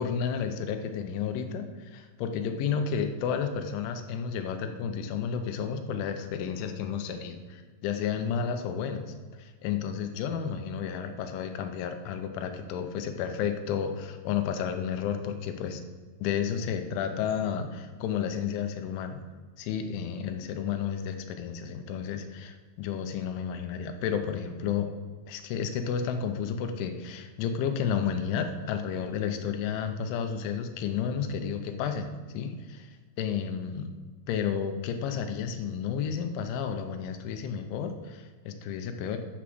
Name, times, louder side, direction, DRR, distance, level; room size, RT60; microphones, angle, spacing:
voice 1, 0.0-15.8 16.2-19.2 19.6-24.9 25.3-32.9 33.2-33.9 34.3-39.2, left 7 dB, 80° left, 7 dB, 3.2 m, -32 dB
12.0 x 6.3 x 6.1 m, 1.5 s
omnidirectional pair, 5.5 m